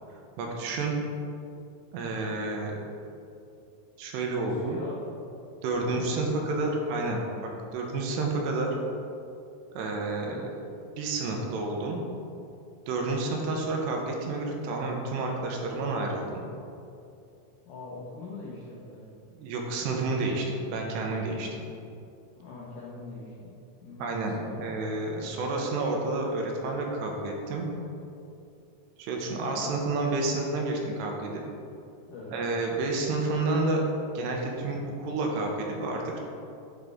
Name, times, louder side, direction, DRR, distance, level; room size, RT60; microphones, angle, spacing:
voice 1, 0.4-0.9 1.9-2.8 4.0-4.8 5.6-7.2 7.7-8.7 9.7-10.5 11.0-12.0 12.9-16.4 19.3-21.6 24.0-27.7 29.0-31.4 32.3-33.8 34.1-36.2, right 2 dB, 85° right, 1 dB, 2.9 m, -30 dB
voice 2, 4.4-5.1 5.9-6.4 10.2-10.5 17.7-19.1 22.4-24.5 29.5-29.7 32.1-32.3, left 3 dB, 85° left, -6 dB, 1.8 m, -43 dB
9.2 x 3.9 x 3.5 m, 2.6 s
omnidirectional pair, 4.8 m